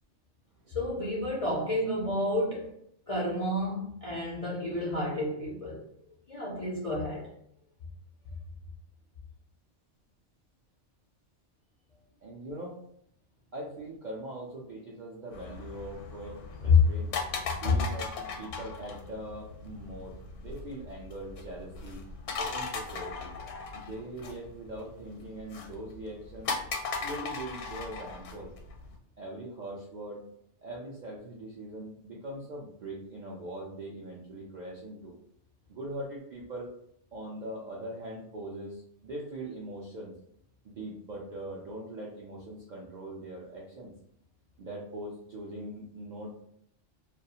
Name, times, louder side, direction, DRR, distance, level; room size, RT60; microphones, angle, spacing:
voice 1, 0.7-2.7 3.1-5.8 6.3-7.3 16.6-16.8 17.6-17.8, left 3 dB, 50° left, -5 dB, 0.4 m, -28 dB
voice 2, 12.2-12.8 13.5-17.1 17.6-22.0 22.4-23.3 23.7-26.5 27.0-28.5 29.2-30.2 30.6-35.1 35.7-36.7 37.1-40.1 40.6-43.9 44.6-46.4, right 1 dB, 65° right, -4 dB, 0.4 m, -41 dB
sound 1, 15.3-29.0, left 4 dB, 75° left, 0.9 m, -39 dB
2.3 x 2.3 x 2.7 m, 0.70 s
omnidirectional pair, 1.3 m